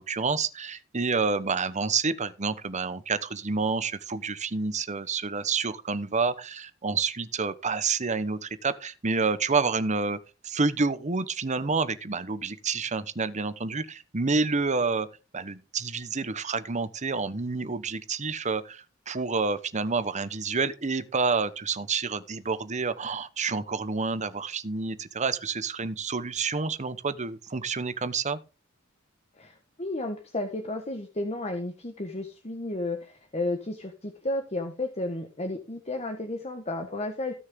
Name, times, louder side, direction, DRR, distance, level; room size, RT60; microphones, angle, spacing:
voice 1, 0.0-10.2 10.4-15.1 15.3-28.4, right 4 dB, 35° right, 1.0 m, -28 dB
voice 2, 29.4-37.3, left 2 dB, 30° left, 1.4 m, -33 dB
16.5 x 6.4 x 3.8 m
head